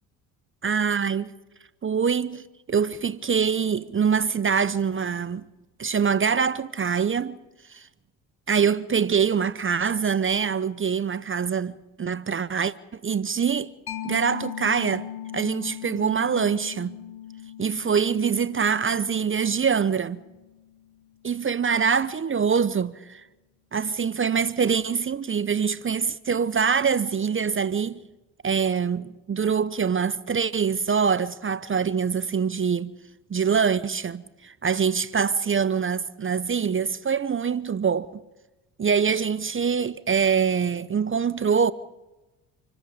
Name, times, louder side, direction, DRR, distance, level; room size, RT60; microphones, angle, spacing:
voice 1, 0.6-1.3 1.8-2.4 2.7-5.5 5.8-7.4 7.7-7.9 8.5-13.7 14.0-15.1 15.3-17.0 17.6-20.2 21.2-23.2 23.7-28.0 28.4-32.9 33.3-38.2 38.8-41.7, right 6 dB, 30° right, 0.9 m, -24 dB
Mallet percussion, 13.9-21.1, left 11 dB, 55° left, 3.4 m, -39 dB
28.0 x 13.5 x 8.6 m
supercardioid pair, 65°, 43 cm